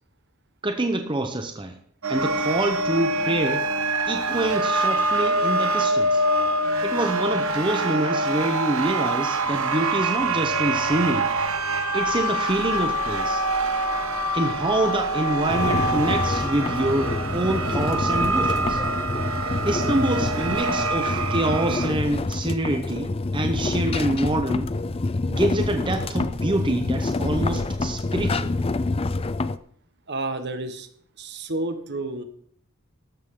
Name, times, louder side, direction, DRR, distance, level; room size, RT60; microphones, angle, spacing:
voice 1, 0.6-1.8 2.1-3.7 4.1-6.2 6.8-11.3 11.9-13.4 14.3-18.8 19.6-24.7 25.3-28.5, right 1 dB, 20° right, 5 dB, 0.9 m, -26 dB
sound 1, 2.0-21.9, right 2 dB, 70° right, 1.4 m, -25 dB
sound 2, 15.5-29.6, left 2 dB, 25° left, 0.4 m, -27 dB
voice 2, 30.1-30.9 31.2-32.2, right 2 dB, 50° right, 8 dB, 1.4 m, -30 dB
14.0 x 12.5 x 3.8 m, 0.62 s
head